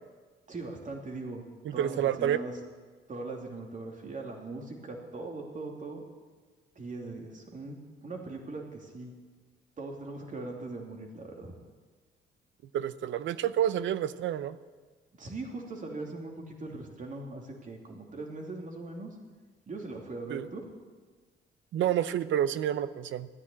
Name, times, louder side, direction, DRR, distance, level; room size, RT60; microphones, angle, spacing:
voice 1, 0.5-1.4 1.7-2.5 3.1-6.0 6.7-9.1 9.8-11.5 15.2-19.2 19.7-20.6, right 3 dB, 40° right, 1 dB, 3.0 m, -40 dB
voice 2, 1.6-2.4 12.7-14.6 20.3-20.5 21.7-23.3, right 10 dB, 70° right, 15 dB, 0.7 m, -29 dB
13.5 x 10.0 x 8.7 m, 1.4 s
cardioid pair, 90°, 20 cm